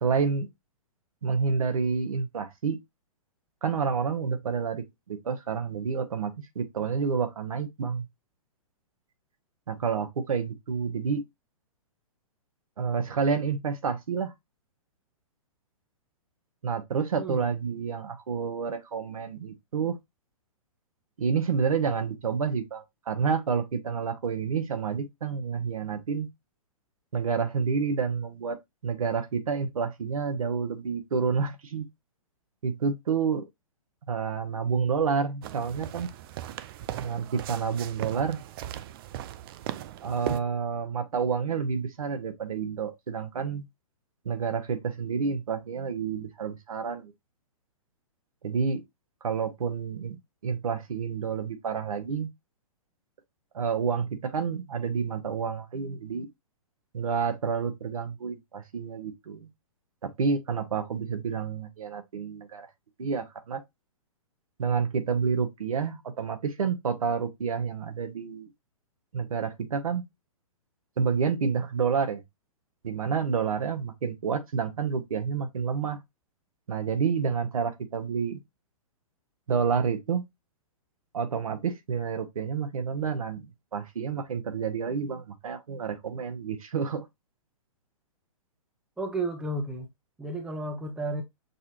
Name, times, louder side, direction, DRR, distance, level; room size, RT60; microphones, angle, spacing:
voice 1, 0.0-0.5 1.2-2.8 3.6-8.0 9.7-11.2 12.8-14.3 16.6-20.0 21.2-26.3 27.1-28.6 28.8-31.9 32.6-33.5 34.1-36.1 37.0-38.4 40.0-43.6 44.2-47.1 48.4-48.8 49.2-52.3 53.5-56.3 56.9-59.5 60.0-62.7 63.0-63.6 64.6-68.5 69.1-70.0 71.0-72.2 72.8-76.0 76.7-78.4 79.5-80.2 81.1-87.0, right 6 dB, 75° right, 1.0 m, -29 dB
voice 2, 17.2-17.5 89.0-89.9 90.2-91.2, right 2 dB, 5° right, 0.8 m, -32 dB
sound 1, 35.4-40.4, right 13 dB, 40° right, 0.4 m, -38 dB
6.6 x 2.5 x 2.9 m
hypercardioid pair, 125°, 18 cm